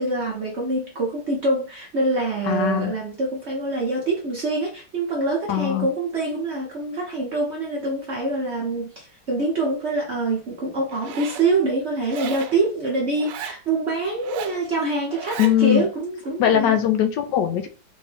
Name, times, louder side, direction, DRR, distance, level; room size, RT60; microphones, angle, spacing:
voice 1, 0.0-16.8, right 2 dB, 50° right, -1 dB, 0.8 m, -25 dB
voice 2, 2.5-2.9 5.5-5.9 15.4-15.9 16.4-17.7, left 10 dB, 75° left, 7 dB, 1.2 m, -20 dB
Zipper (clothing), 10.9-11.5 12.1-12.6 13.2-13.6 14.2-14.6 15.1-15.6, right 7 dB, 75° right, 1.2 m, -34 dB
3.7 x 2.7 x 3.3 m, 0.36 s
omnidirectional pair, 2.0 m